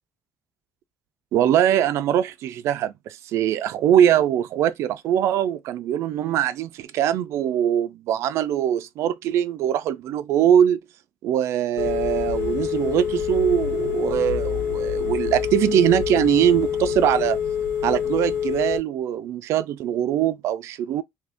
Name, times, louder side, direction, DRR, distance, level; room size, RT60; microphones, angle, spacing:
voice 1, 1.3-10.8 11.2-17.4 17.8-21.0, right 10 dB, 70° right, 0.4 m, -22 dB
Telephone, 11.8-18.8, left 7 dB, 70° left, 0.9 m, -26 dB
2.8 x 2.5 x 3.4 m
cardioid pair, 160°, 5 cm